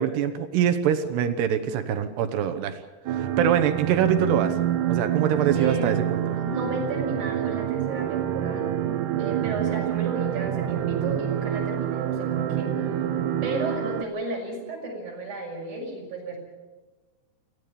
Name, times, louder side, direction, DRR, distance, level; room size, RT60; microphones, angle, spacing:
voice 1, 0.0-2.8 3.1-4.6 4.9-6.4, right 9 dB, 75° right, 9 dB, 3.1 m, -24 dB
sound 1, 3.1-14.0, right 10 dB, 90° right, 1.8 m, -27 dB
voice 2, 5.5-8.7 9.2-13.0 13.4-16.4, right 2 dB, 45° right, -1 dB, 7.3 m, -34 dB
25.5 x 16.5 x 7.0 m, 1.2 s
omnidirectional pair, 5.1 m